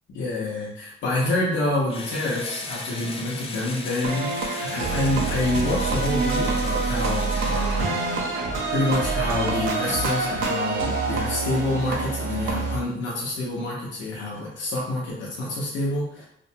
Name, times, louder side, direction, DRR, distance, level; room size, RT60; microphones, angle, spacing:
voice 1, 0.1-8.0 8.2-16.2, left 2 dB, 70° left, -5 dB, 0.8 m, -27 dB
Engine / Drill, 1.9-8.5, left 3 dB, 30° left, 0.4 m, -37 dB
sound 1, 4.0-12.8, right 3 dB, 80° right, 0.6 m, -26 dB
2.4 x 2.1 x 2.7 m, 0.72 s
cardioid pair, 90°, 20 cm